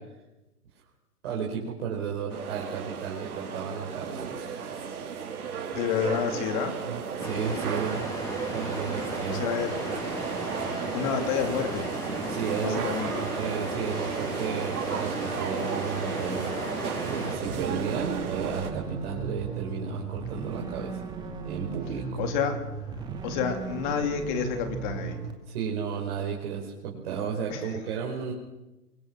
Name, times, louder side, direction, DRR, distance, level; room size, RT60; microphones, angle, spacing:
voice 1, 1.2-4.8 6.9-8.1 8.5-9.5 12.3-12.8 13.2-21.0 21.4-22.2 25.5-28.3, right 6 dB, 40° right, -2 dB, 5.2 m, -33 dB
sound 1, 2.3-18.7, right 6 dB, 70° right, 5.0 m, -34 dB
voice 2, 5.7-6.7 9.0-9.9 10.7-11.9 12.6-13.3 22.2-22.5 23.2-25.2 27.5-27.7, left 7 dB, 30° left, 6 dB, 3.3 m, -29 dB
sound 2, 7.2-17.4, right 1 dB, 10° left, 6.6 m, -35 dB
sound 3, 17.4-25.3, right 5 dB, 10° right, 2.5 m, -36 dB
25.5 x 24.0 x 6.3 m, 1.0 s
hypercardioid pair, 150°, 45 cm